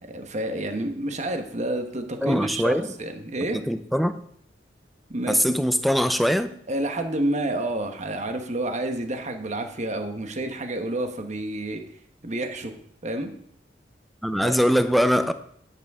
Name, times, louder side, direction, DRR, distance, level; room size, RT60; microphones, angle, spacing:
voice 1, 0.0-3.6 5.1-5.5 6.7-11.8 12.2-12.7 13.0-13.3 14.4-14.6, right 1 dB, 40° right, 1.2 m, -29 dB
voice 2, 2.2-2.9 3.5-4.2 5.3-6.5 14.2-15.3, equal, ahead, 0.6 m, -22 dB
11.5 x 9.7 x 3.6 m
head